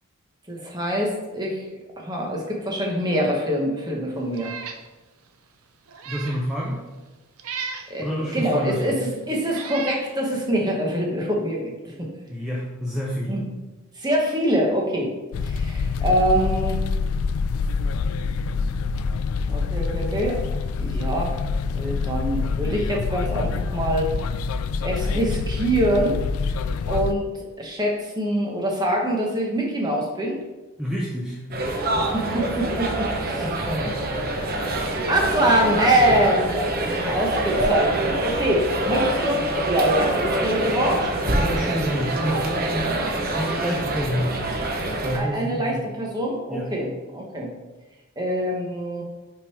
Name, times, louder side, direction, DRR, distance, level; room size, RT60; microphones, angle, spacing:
voice 1, 0.5-1.6 2.0-4.5 7.5-7.6 7.9-9.0 9.3-11.7 12.0-12.1 13.3-13.4 14.0-15.1 15.4-16.8 19.5-20.4 20.8-21.3 21.7-24.1 24.8-26.2 26.9-27.2 27.6-30.4 31.7-31.8 32.1-33.4 34.7-41.1 45.1-47.5 48.2-49.0, right 1 dB, 20° right, -1 dB, 1.1 m, -24 dB
Meow, 4.3-4.8 5.3-5.4 5.9-6.4 7.4-7.9 8.8-8.9 9.5-10.1, right 6 dB, 85° right, 0.6 m, -34 dB
voice 2, 6.1-6.8 8.0-9.0 12.3-13.4 30.8-31.4 33.4-34.0 36.0-36.1 41.4-43.1 43.3-44.6 45.0-45.9 46.5-46.7, equal, 5° right, -5 dB, 0.6 m, -28 dB
sound 1, 15.3-27.1, left 4 dB, 90° left, 0.3 m, -26 dB
sound 2, 31.5-45.2, right 1 dB, 45° right, 0.8 m, -25 dB
5.8 x 3.9 x 4.7 m, 1.1 s
head